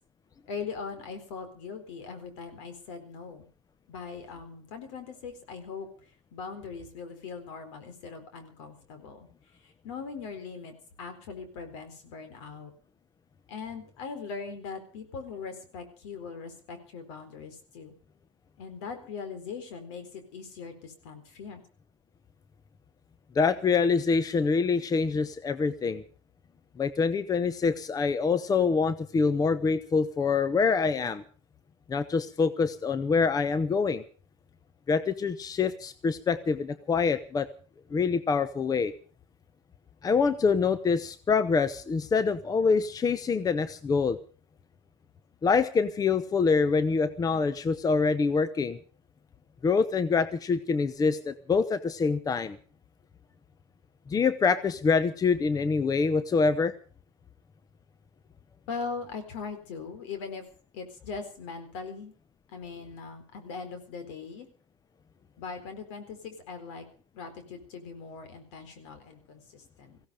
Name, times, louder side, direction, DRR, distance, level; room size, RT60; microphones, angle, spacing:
voice 1, 0.5-3.5 3.9-5.9 6.3-9.3 9.6-12.7 13.5-17.9 18.6-21.6 58.7-60.4 60.7-62.1 62.5-64.5 65.4-66.8 67.1-70.0, left 5 dB, 75° left, 8 dB, 4.1 m, -40 dB
voice 2, 23.3-26.0 26.8-31.2 31.9-34.0 34.9-37.5 37.9-38.9 40.0-44.2 45.4-48.8 49.6-52.6 54.1-56.7, left 5 dB, 25° left, 14 dB, 0.9 m, -25 dB
18.0 x 16.0 x 5.0 m, 0.38 s
supercardioid pair, 100°, 15 cm